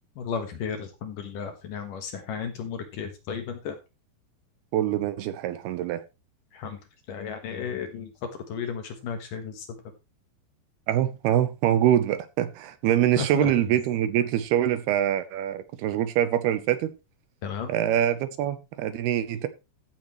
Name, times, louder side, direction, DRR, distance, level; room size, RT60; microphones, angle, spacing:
voice 1, 0.2-3.8 6.5-6.8 7.1-8.1 8.5-9.7 13.2-13.5 17.4-17.7, left 7 dB, 60° left, 2.6 m, -33 dB
voice 2, 4.7-6.0 10.9-16.9 17.7-19.5, right 11 dB, 75° right, 2.6 m, -24 dB
14.5 x 8.1 x 3.1 m
omnidirectional pair, 4.9 m